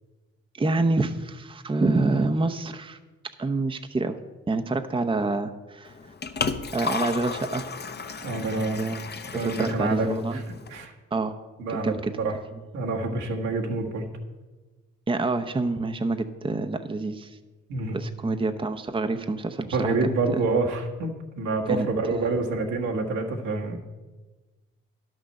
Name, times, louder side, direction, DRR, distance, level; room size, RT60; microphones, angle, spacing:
voice 1, 0.5-3.0 3.4-4.2 4.5-5.9 6.7-7.6 8.8-9.0 9.3-10.4 11.1-11.3 11.7-12.1 15.1-17.4 17.9-19.9 20.3-20.4 21.7-22.3, right 3 dB, 20° right, 8 dB, 0.7 m, -27 dB
Liquid, 5.8-10.9, left 5 dB, 35° left, 0.8 m, -34 dB
voice 2, 8.2-8.8 9.3-10.9 11.6-12.4 12.7-14.1 17.7-18.0 19.7-23.8, right 3 dB, 80° right, 0 dB, 1.6 m, -27 dB
11.0 x 6.3 x 6.6 m, 1.2 s
supercardioid pair, 55°, 29 cm